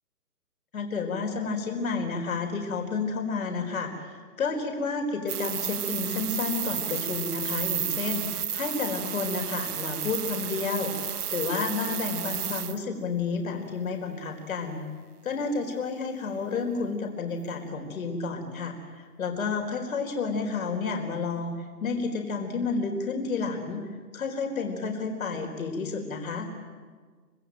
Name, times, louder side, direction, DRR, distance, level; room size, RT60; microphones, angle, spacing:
voice 1, 0.7-14.8 15.2-23.8 24.1-26.5, left 4 dB, 55° left, 4 dB, 4.5 m, -31 dB
sound 1, 5.3-12.8, right 9 dB, 70° right, 0.8 m, -32 dB
26.5 x 25.0 x 9.1 m, 1.5 s
figure-of-eight pair, 145°, 48 cm